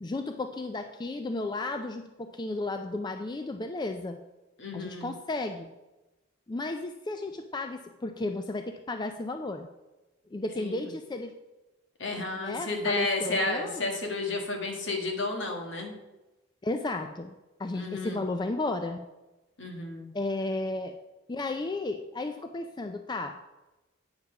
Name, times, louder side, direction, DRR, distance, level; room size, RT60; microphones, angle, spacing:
voice 1, 0.0-4.2 4.7-5.7 6.5-9.7 10.3-11.3 12.1-13.8 16.6-17.3 17.6-19.0 20.1-21.0 21.3-23.4, left 2 dB, 20° left, 6 dB, 0.4 m, -33 dB
voice 2, 4.6-5.1 10.6-10.9 12.0-15.9 17.7-18.2 19.6-20.1, left 2 dB, 65° left, 2 dB, 1.7 m, -32 dB
8.8 x 5.4 x 5.7 m, 1.0 s
head